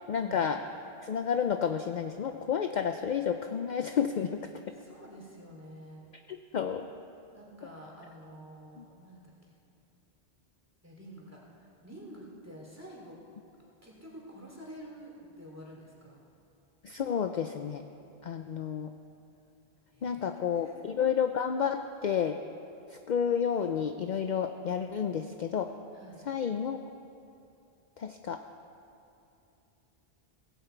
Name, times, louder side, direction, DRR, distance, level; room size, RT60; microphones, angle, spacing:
voice 1, 0.1-0.6 1.0-4.7 6.3-6.9 8.8-8.9 16.8-17.8 18.2-18.9 20.0-22.4 22.9-25.7 26.3-26.8 28.0-28.4, left 7 dB, 55° left, 7 dB, 0.6 m, -31 dB
voice 2, 4.8-6.0 7.3-9.6 10.8-13.2 13.8-16.2 19.9-20.8 25.9-26.2, right 1 dB, 15° right, -3 dB, 2.9 m, -49 dB
17.0 x 16.0 x 4.5 m, 2.8 s
omnidirectional pair, 1.0 m